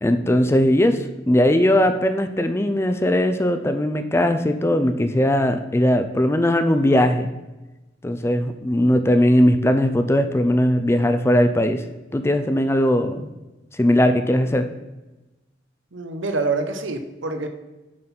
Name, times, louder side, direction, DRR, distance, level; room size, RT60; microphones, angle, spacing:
voice 1, 0.0-7.3 8.0-11.8 12.1-13.3 13.7-14.7, left 1 dB, 15° left, 9 dB, 0.4 m, -19 dB
voice 2, 15.9-17.5, right 3 dB, 85° right, 6 dB, 0.9 m, -26 dB
7.6 x 4.0 x 5.8 m, 1.1 s
head